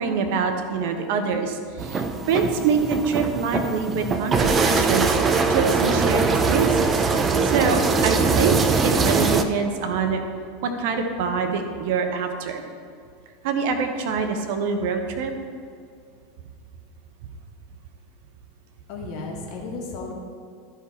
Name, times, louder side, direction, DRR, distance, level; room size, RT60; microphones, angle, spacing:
voice 1, 0.0-6.9 7.4-8.6 8.8-10.2 10.6-12.7 13.4-15.3, right 5 dB, 55° right, 6 dB, 1.0 m, -25 dB
sound 1, 1.8-9.4, right 4 dB, 25° right, 0.7 m, -22 dB
voice 2, 18.9-20.1, left 3 dB, 50° left, -1 dB, 1.8 m, -34 dB
13.5 x 5.0 x 4.2 m, 2.3 s
figure-of-eight pair, 85°, 0 cm